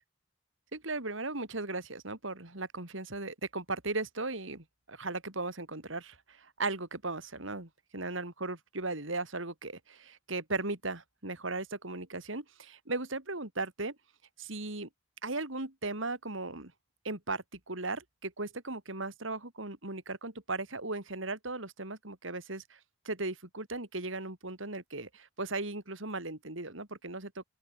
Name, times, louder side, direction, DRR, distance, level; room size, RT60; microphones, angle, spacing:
voice 1, 0.7-14.0 14.4-14.9 15.2-16.7 17.0-22.8 23.0-27.4, right 2 dB, 70° right, 3.8 m, -37 dB
open air
head